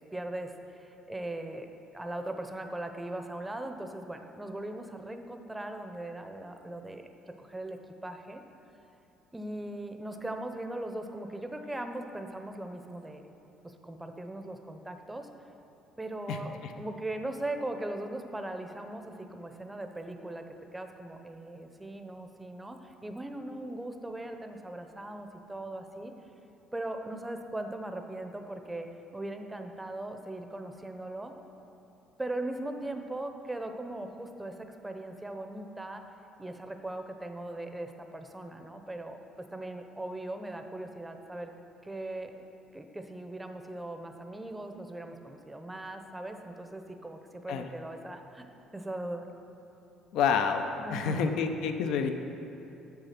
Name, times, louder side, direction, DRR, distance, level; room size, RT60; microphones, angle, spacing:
voice 1, 0.1-7.0 7.4-8.4 9.3-13.2 13.6-15.3 16.0-20.4 20.7-26.1 26.7-28.9 29.1-31.3 32.2-36.0 36.4-41.5 41.8-42.3 42.7-48.5 48.7-49.3 50.8-51.4, right 1 dB, 10° right, 6 dB, 0.7 m, -39 dB
voice 2, 50.1-50.6 50.9-52.1, left 6 dB, 75° left, 7 dB, 0.7 m, -28 dB
8.3 x 6.8 x 5.8 m, 2.9 s
cardioid pair, 115°, 0 cm